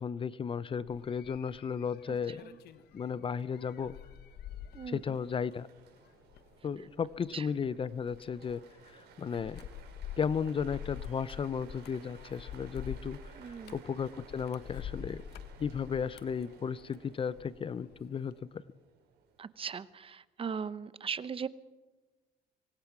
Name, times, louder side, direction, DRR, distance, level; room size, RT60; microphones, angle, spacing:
voice 1, 0.0-2.4 2.9-4.0 4.9-5.7 6.6-9.6 10.2-15.2 15.6-18.6, left 6 dB, 30° left, 18 dB, 0.6 m, -35 dB
sound 1, 0.9-17.6 17.9-18.4, left 9 dB, 70° left, 1.4 m, -47 dB
sound 2, 1.9-20.0, right 6 dB, 75° right, 5.5 m, -59 dB
voice 2, 2.3-2.6 4.7-5.2 6.8-6.9 7.3-7.5 13.4-13.8 19.4-21.5, right 6 dB, 35° right, 16 dB, 0.9 m, -39 dB
25.0 x 20.0 x 6.0 m, 1.2 s
cardioid pair, 110°, 17 cm